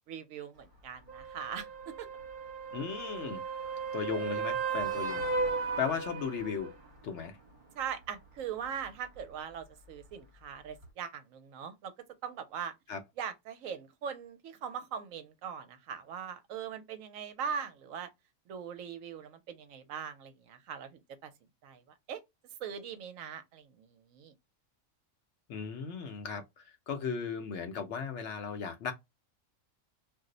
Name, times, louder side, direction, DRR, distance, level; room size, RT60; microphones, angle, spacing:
voice 1, 0.1-2.1 7.8-11.9 12.2-12.7 13.2-18.1 18.5-21.3 21.6-21.8 22.1-22.2 22.6-24.3, right 7 dB, 75° right, 0.9 m, -41 dB
sound 1, 1.1-6.7 10.8-10.9, right 4 dB, 40° right, 1.0 m, -35 dB
voice 2, 2.7-3.4 3.9-5.3 5.8-6.7 7.0-7.4 12.9-13.0 25.5-28.9, left 6 dB, 65° left, 0.8 m, -36 dB
2.5 x 2.0 x 3.7 m
omnidirectional pair, 1.5 m